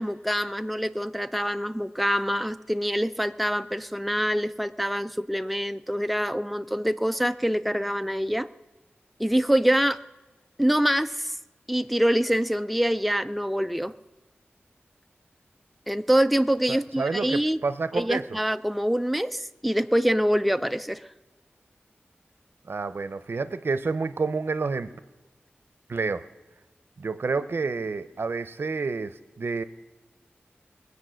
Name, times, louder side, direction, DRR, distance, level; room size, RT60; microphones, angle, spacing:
voice 1, 0.0-8.5 9.2-10.0 10.6-11.3 11.7-13.9 15.9-17.6 17.9-21.0, equal, ahead, 10 dB, 0.4 m, -25 dB
voice 2, 16.7-18.2 22.7-24.9 25.9-26.2 27.0-29.6, right 4 dB, 70° right, 13 dB, 0.6 m, -29 dB
20.5 x 8.2 x 6.2 m, 1.1 s
wide cardioid pair, 90°, 4 cm